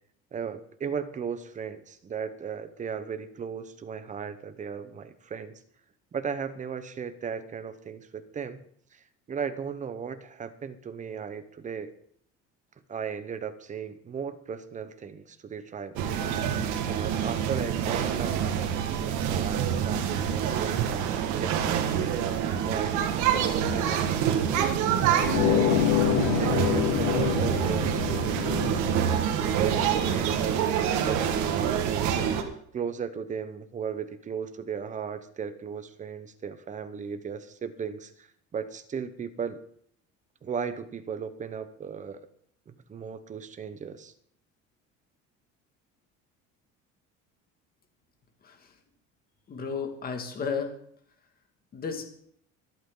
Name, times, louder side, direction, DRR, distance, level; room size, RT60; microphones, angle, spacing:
voice 1, 0.3-5.6 6.1-8.6 8.9-9.0 9.3-11.9 12.9-16.1 16.8-18.5 19.3-22.2 22.6-24.0 24.4-25.8 26.3-30.6 30.9-39.6 40.4-42.3 42.7-44.1, right 6 dB, 25° right, 10 dB, 1.0 m, -36 dB
sound 1, 16.0-32.4, right 8 dB, 80° right, 1.8 m, -26 dB
sound 2, 25.2-30.5, left 17 dB, 80° left, 0.6 m, -28 dB
voice 2, 48.4-48.7 49.5-50.8 51.7-52.1, left 5 dB, 30° left, 5 dB, 2.2 m, -33 dB
25.0 x 8.5 x 3.9 m, 0.65 s
cardioid pair, 150°, 29 cm